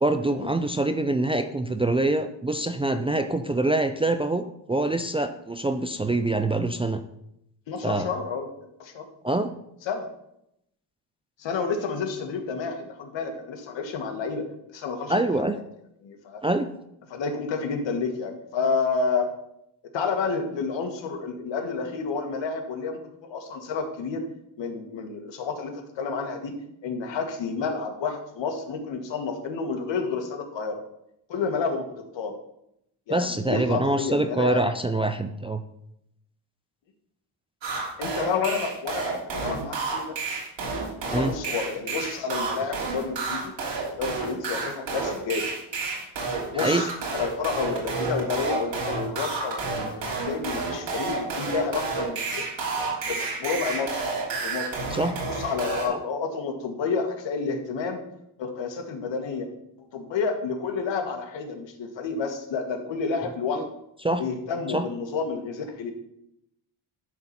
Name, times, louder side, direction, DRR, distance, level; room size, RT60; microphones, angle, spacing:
voice 1, 0.0-7.0 7.8-8.1 9.2-9.5 15.1-15.6 16.4-16.7 33.1-35.6 41.1-41.3 46.5-46.8 54.9-55.1 55.9-56.0 63.6-63.7 64.0-64.2 64.7-64.8, right 2 dB, 15° right, 7 dB, 0.4 m, -25 dB
voice 2, 7.7-8.5 8.8-9.0 9.8-10.1 11.4-15.2 15.5-15.6 16.0-16.4 17.1-19.3 19.9-24.2 24.6-26.5 26.8-30.8 31.3-32.4 33.1-34.6 38.0-40.2 41.1-43.5 44.0-45.5 46.5-49.8 50.2-52.4 53.0-54.1 54.3-54.8 55.3-58.0 58.4-59.5 59.9-63.6 64.2-65.9, left 5 dB, 70° left, 4 dB, 1.7 m, -30 dB
sound 1, 37.6-55.9, right 4 dB, 70° right, 3.2 m, -30 dB
11.5 x 4.1 x 5.9 m, 0.79 s
cardioid pair, 110°, 46 cm